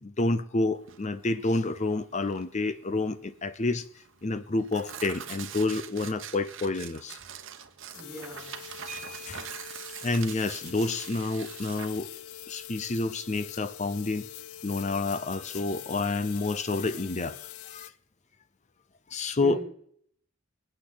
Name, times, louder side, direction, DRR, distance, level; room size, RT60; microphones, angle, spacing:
voice 1, 0.0-3.8 4.2-7.2 9.3-9.5 10.0-12.1 12.5-14.3 14.6-17.4 17.7-17.9 19.1-19.6, left 3 dB, 35° left, 0.6 m, -29 dB
Tearing, 0.8-15.0, right 8 dB, 60° right, 1.0 m, -44 dB
sound 1, 7.9-17.9, left 12 dB, 90° left, 0.5 m, -44 dB
voice 2, 7.9-8.5 19.4-19.7, right 3 dB, 5° right, 6.7 m, -38 dB
sound 2, 8.9-10.0 11.4-11.5 11.9-12.1 12.4-12.7, right 2 dB, 35° right, 0.9 m, -47 dB
23.5 x 8.8 x 3.9 m
head